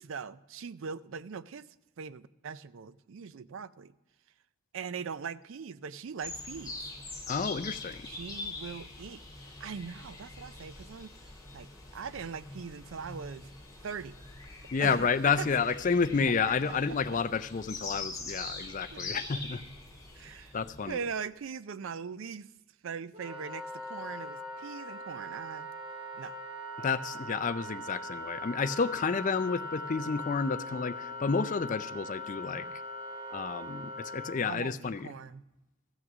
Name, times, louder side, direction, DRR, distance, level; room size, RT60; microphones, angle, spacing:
voice 1, 0.0-3.9 4.7-6.8 8.0-9.2 9.6-11.1 11.5-13.5 13.8-14.2 14.8-15.0 15.2-15.5 16.9-17.0 18.3-18.4 18.9-19.2 20.2-20.6 20.9-22.5 22.8-25.7 26.1-26.4 26.8-26.9 32.5-32.8 34.4-35.4, right 6 dB, 60° right, 16 dB, 0.4 m, -41 dB
sound 1, 6.2-21.0, left 3 dB, 15° left, 2.5 m, -43 dB
voice 2, 7.3-8.1 14.7-19.6 20.5-21.0 26.8-32.7 33.3-35.1, left 5 dB, 35° left, 13 dB, 0.4 m, -30 dB
Wind instrument woodwind instrument, 23.1-34.4, left 1 dB, 25° right, 1.7 m, -41 dB
15.0 x 6.3 x 6.0 m, 1.0 s
head